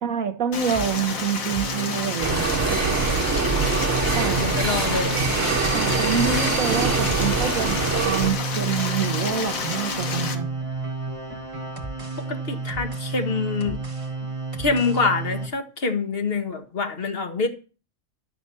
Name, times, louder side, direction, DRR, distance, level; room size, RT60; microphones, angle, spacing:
voice 1, 0.0-2.5 4.1-4.6 5.7-10.5, right 7 dB, 80° right, 1.7 m, -27 dB
Stream, 0.5-10.3, left 5 dB, 90° left, 1.8 m, -30 dB
sound 1, 0.7-15.5, right 3 dB, 25° right, 1.3 m, -32 dB
sound 2, 2.2-8.3, right 4 dB, 60° right, 1.8 m, -24 dB
voice 2, 4.4-5.2 12.2-13.8 14.6-17.5, left 4 dB, 45° left, 1.7 m, -25 dB
12.0 x 6.1 x 6.9 m
omnidirectional pair, 1.4 m